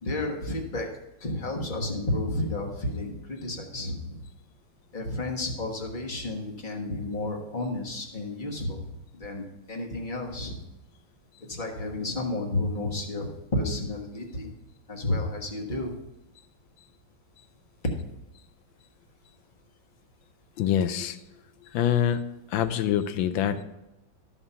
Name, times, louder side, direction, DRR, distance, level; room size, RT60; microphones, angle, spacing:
voice 1, 0.0-0.9 1.2-4.2 4.9-10.6 11.5-13.3 13.5-14.5 14.9-16.0, left 2 dB, 30° left, 0 dB, 1.3 m, -31 dB
voice 2, 20.6-21.2 21.7-22.2 22.5-23.6, left 10 dB, 85° left, 11 dB, 1.4 m, -25 dB
13.0 x 4.4 x 5.5 m, 0.95 s
omnidirectional pair, 2.0 m